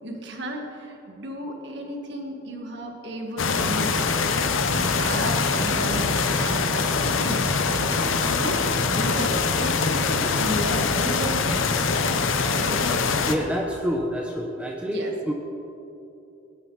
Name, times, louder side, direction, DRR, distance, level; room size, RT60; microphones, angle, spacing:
voice 1, 0.0-4.0 4.7-12.0 12.5-12.8 14.9-15.1, equal, 60° right, 2 dB, 1.9 m, -33 dB
sound 1, 3.4-13.4, left 4 dB, 80° left, 0.9 m, -23 dB
voice 2, 13.2-15.3, equal, 5° right, 1 dB, 0.8 m, -27 dB
19.5 x 10.5 x 4.1 m, 2.9 s
head